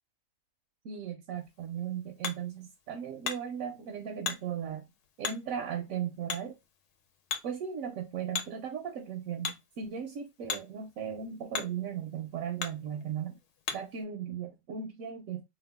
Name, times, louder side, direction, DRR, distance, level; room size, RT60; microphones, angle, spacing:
voice 1, 0.8-4.9 5.2-6.5 7.4-13.4 13.7-15.4, right 8 dB, 70° right, 0.9 m, -37 dB
Hammer, 1.4-14.0, left 7 dB, 80° left, 1.1 m, -42 dB
2.8 x 2.3 x 3.4 m
omnidirectional pair, 1.7 m